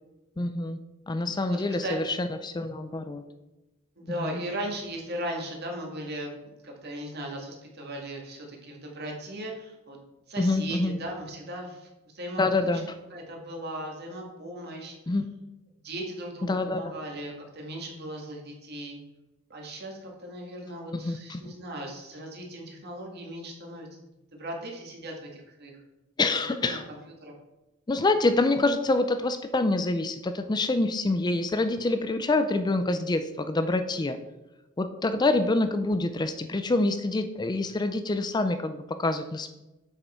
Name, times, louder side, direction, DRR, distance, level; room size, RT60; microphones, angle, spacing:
voice 1, 0.4-0.8 1.1-3.2 4.2-4.3 10.4-11.0 12.4-12.9 15.1-15.3 16.5-16.9 21.0-21.4 26.2-26.8 27.9-34.2 34.8-39.5, left 2 dB, 20° left, 9 dB, 0.4 m, -26 dB
voice 2, 1.4-2.0 4.0-10.0 10.3-11.9 12.1-12.8 13.1-15.0 15.8-19.0 19.5-23.9 24.4-25.7 26.6-27.3, right 1 dB, 50° right, 0 dB, 2.1 m, -37 dB
8.0 x 6.5 x 4.4 m, 1.0 s
head